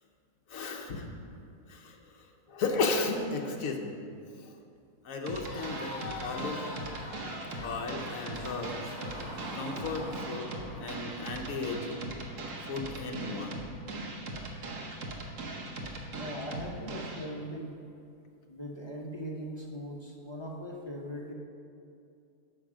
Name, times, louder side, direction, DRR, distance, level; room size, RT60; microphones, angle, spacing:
voice 1, 0.5-1.1 1.7-2.0 2.5-4.0 4.4-4.5 5.0-6.7 7.6-8.9 9.5-10.5 10.8-12.1 12.7-13.6, left 3 dB, 65° left, 2 dB, 1.3 m, -34 dB
Crowd, 5.2-10.2, left 2 dB, 80° left, 2.0 m, -44 dB
sound 1, 5.3-17.3, right 2 dB, 60° right, 1.4 m, -40 dB
sound 2, 6.2-13.0, equal, 5° right, 2.5 m, -47 dB
voice 2, 16.1-17.7 18.5-21.3, equal, 25° left, -2 dB, 0.6 m, -40 dB
9.7 x 5.8 x 6.3 m, 2.5 s
omnidirectional pair, 1.6 m